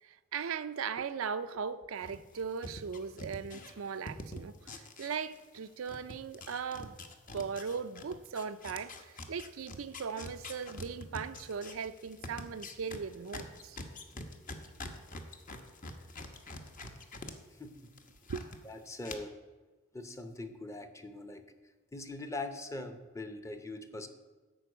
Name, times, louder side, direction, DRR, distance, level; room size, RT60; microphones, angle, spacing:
voice 1, 0.0-7.0 7.3-13.8 18.3-18.4, right 6 dB, 75° right, 0.5 m, -38 dB
sound 1, 2.0-5.6 5.9-17.3 17.7-18.6 19.0-19.1, left 2 dB, 40° left, 0.9 m, -45 dB
voice 2, 17.6-17.9 18.6-19.3 19.9-21.4 21.9-24.1, left 2 dB, 15° left, 0.7 m, -42 dB
11.0 x 4.6 x 8.1 m
head